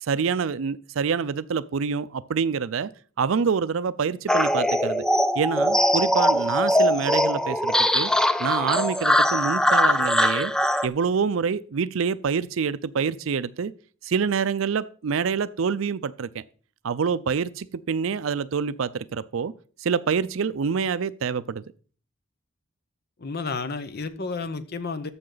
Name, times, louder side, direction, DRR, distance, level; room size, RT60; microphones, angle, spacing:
voice 1, 0.0-2.9 3.2-5.0 5.4-8.1 8.4-10.5 10.8-13.7 14.0-16.4 16.8-19.5 19.8-21.6, right 6 dB, 75° right, 0.5 m, -26 dB
sound 1, 4.3-10.9, equal, 5° left, 0.3 m, -21 dB
voice 2, 23.2-25.1, left 4 dB, 50° left, 0.8 m, -31 dB
14.0 x 5.8 x 3.9 m
head